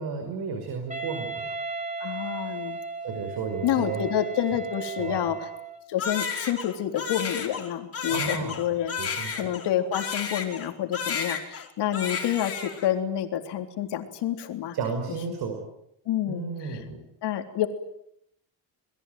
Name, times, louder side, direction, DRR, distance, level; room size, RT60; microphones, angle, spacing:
voice 1, 0.0-1.6 3.0-4.1 5.0-5.3 8.0-9.5 14.7-15.6 16.3-17.0, right 5 dB, 60° right, 5 dB, 5.6 m, -33 dB
Wind instrument woodwind instrument, 0.9-5.9, right 4 dB, 15° right, 2.5 m, -35 dB
voice 2, 2.0-2.8 3.6-5.5 5.9-8.9 9.3-14.8 16.1-16.8 17.2-17.7, left 11 dB, 65° left, 6 dB, 3.6 m, -28 dB
Crying sobbing, 6.0-10.7 10.9-11.7 11.9-12.9, left 6 dB, 30° left, 4.7 m, -32 dB
28.0 x 22.0 x 9.4 m, 0.76 s
cardioid pair, 155°, 44 cm